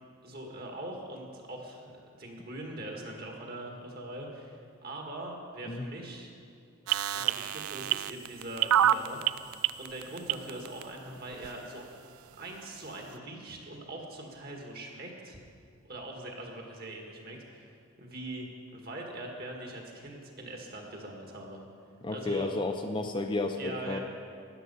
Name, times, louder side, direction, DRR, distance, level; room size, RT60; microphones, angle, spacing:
voice 1, 0.2-6.3 7.1-9.5 9.8-11.8 12.4-15.4 15.8-18.5 18.7-21.6 22.1-22.5 23.6-24.0, right 1 dB, 45° right, 1 dB, 1.8 m, -42 dB
sound 1, 6.9-10.8 11.4-11.5, right 11 dB, 90° right, 0.3 m, -26 dB
voice 2, 22.0-24.0, left 2 dB, 25° left, 5 dB, 0.5 m, -32 dB
13.0 x 10.5 x 5.6 m, 2.3 s
head